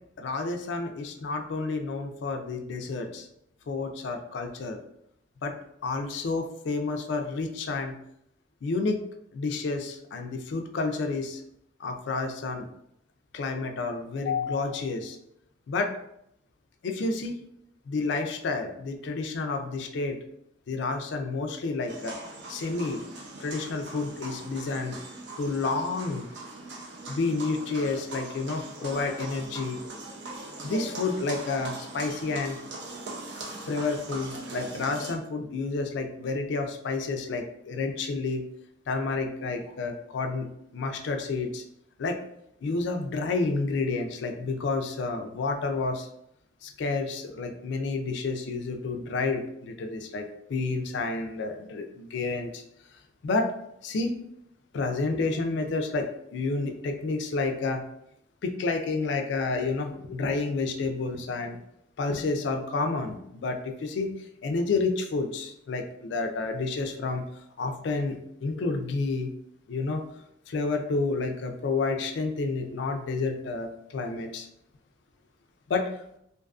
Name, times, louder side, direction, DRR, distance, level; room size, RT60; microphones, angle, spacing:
voice 1, 0.2-3.3 3.7-4.8 5.4-7.9 8.6-9.0 9.3-11.4 11.8-12.7 13.3-15.2 15.7-15.9 16.8-17.4 17.9-20.2 20.7-22.2 22.5-23.0 23.4-25.0 25.4-26.2 27.1-29.8 30.6-32.6 33.7-38.4 38.9-41.6 42.0-42.2 42.6-46.1 46.6-50.2 50.5-52.6 53.2-53.5 53.8-54.1 54.7-57.8 58.4-61.6 62.0-64.1 64.4-67.3 67.6-69.3 69.7-70.0 70.5-74.5 75.7-75.9, left 3 dB, 60° left, 4 dB, 0.3 m, -30 dB
sound 1, 21.9-35.2, right 2 dB, 60° right, 0.5 m, -40 dB
2.5 x 2.3 x 2.3 m, 0.76 s
head